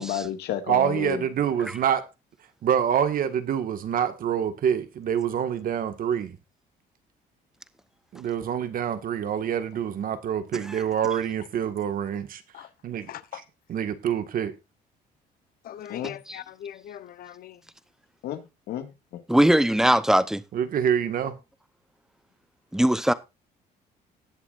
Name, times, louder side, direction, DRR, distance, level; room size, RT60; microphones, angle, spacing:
voice 1, 0.0-1.2 15.9-16.2 18.2-19.2, left 10 dB, 75° left, 2.1 m, -32 dB
voice 2, 0.7-2.0 2.6-6.4 8.1-12.4 12.8-13.1 13.7-14.5 20.5-21.4, right 9 dB, 55° right, 1.8 m, -26 dB
voice 3, 13.1-13.4 15.6-17.6, left 10 dB, 60° left, 1.0 m, -41 dB
voice 4, 19.3-20.4 22.7-23.1, right 1 dB, 5° right, 0.9 m, -20 dB
19.0 x 7.2 x 2.6 m
cardioid pair, 110°, 17 cm